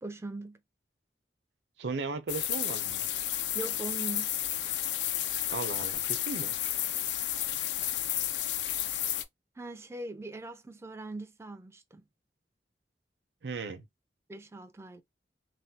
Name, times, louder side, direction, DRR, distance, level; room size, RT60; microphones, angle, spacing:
voice 1, 0.0-0.6 3.5-4.3 9.6-12.0 14.3-15.0, right 2 dB, 15° right, 0.3 m, -41 dB
voice 2, 1.8-3.0 5.5-6.5 13.4-13.8, right 4 dB, 75° right, 0.5 m, -36 dB
sound 1, 2.3-9.2, left 11 dB, 80° left, 0.4 m, -32 dB
3.1 x 2.2 x 2.7 m
head